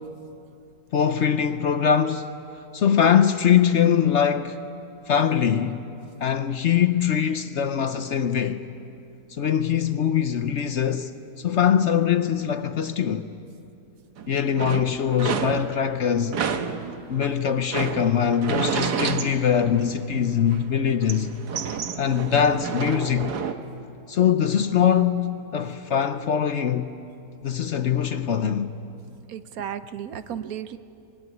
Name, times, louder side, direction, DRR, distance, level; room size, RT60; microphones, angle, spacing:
voice 1, 0.9-2.3 2.7-4.6 5.1-5.8 6.2-8.6 9.3-13.3 14.3-16.4 17.1-21.3 22.0-23.3 24.1-26.9 27.4-28.7, left 8 dB, 55° left, 0.9 m, -22 dB
sound 1, 14.2-16.0 16.3-20.2 20.5-23.5, right 6 dB, 90° right, 1.7 m, -30 dB
voice 2, 29.3-30.8, right 9 dB, 70° right, 1.2 m, -34 dB
25.0 x 21.5 x 9.4 m
omnidirectional pair, 1.7 m